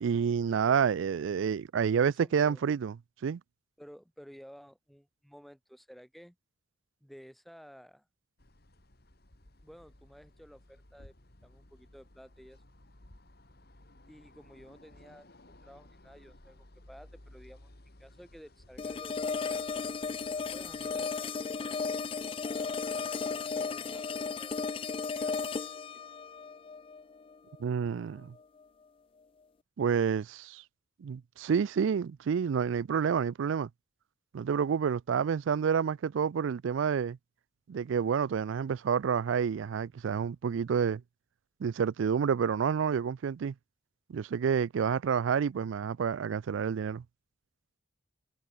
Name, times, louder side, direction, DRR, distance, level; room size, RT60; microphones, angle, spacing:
voice 1, 0.0-2.9 3.2-3.4 27.6-28.3 29.8-30.6 31.0-33.7 34.3-37.2 37.7-41.0 41.6-43.5 44.1-47.0, right 7 dB, 75° right, 0.4 m, -29 dB
voice 2, 2.0-2.6 3.8-6.4 7.0-8.1 9.6-11.1 11.4-12.6 14.1-15.3 15.6-17.7 18.0-19.6 20.3-22.0 22.9-25.7, equal, ahead, 2.9 m, -54 dB
sound 1, 8.4-21.1, left 1 dB, 55° left, 2.7 m, -57 dB
sound 2, 18.8-27.8, left 5 dB, 25° left, 0.3 m, -35 dB
head